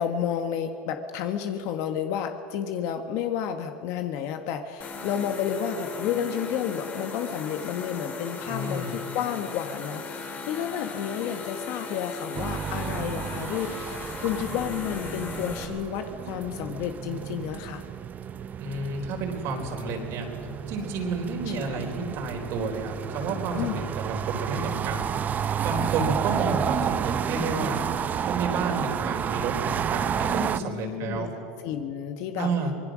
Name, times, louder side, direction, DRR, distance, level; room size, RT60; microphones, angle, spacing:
voice 1, 0.0-17.8 21.5-22.0 23.6-23.8 30.3-31.3 31.6-32.5, left 9 dB, 65° left, 7 dB, 1.4 m, -31 dB
sound 1, 4.8-15.7, left 4 dB, 30° left, 2.9 m, -38 dB
voice 2, 8.5-9.0 18.6-20.3 20.7-25.1 25.6-27.8 28.2-31.3 32.4-32.7, right 3 dB, 55° right, 2 dB, 4.2 m, -31 dB
sound 2, 12.4-30.6, right 8 dB, 30° right, 0.6 m, -31 dB
25.0 x 20.0 x 6.3 m, 2.6 s
supercardioid pair, 125°, 6 cm